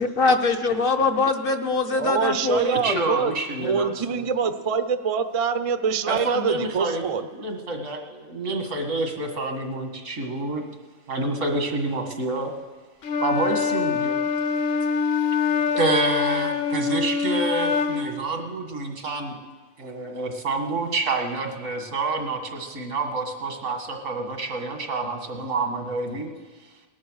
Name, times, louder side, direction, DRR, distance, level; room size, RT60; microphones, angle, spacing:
voice 1, 0.0-3.1, left 3 dB, 50° left, 6 dB, 1.0 m, -23 dB
voice 2, 1.9-3.3 3.6-7.3, right 6 dB, 40° right, 10 dB, 0.5 m, -25 dB
voice 3, 2.6-4.2 6.1-7.0 7.3-10.6 11.1-12.5 13.2-14.1 15.7-19.4 19.8-26.3, right 3 dB, 85° right, 3 dB, 2.2 m, -28 dB
Wind instrument woodwind instrument, 13.0-18.2, left 5 dB, 90° left, 1.2 m, -24 dB
18.5 x 11.0 x 6.4 m, 1.4 s
omnidirectional pair, 1.3 m